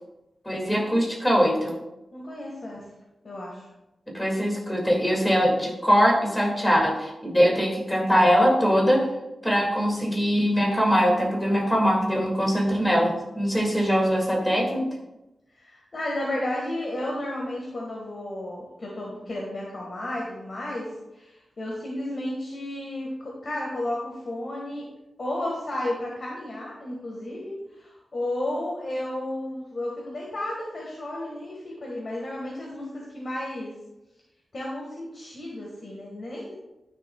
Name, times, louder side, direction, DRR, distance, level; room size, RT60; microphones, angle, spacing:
voice 1, 0.5-1.8 4.1-9.1 9.4-14.9, equal, 10° left, -2 dB, 2.3 m, -22 dB
voice 2, 2.1-2.8 3.2-3.7 15.5-24.9 25.2-33.7 34.5-36.5, left 1 dB, 45° left, -3 dB, 1.6 m, -33 dB
12.0 x 6.9 x 2.3 m, 0.95 s
wide cardioid pair, 130°, 0 cm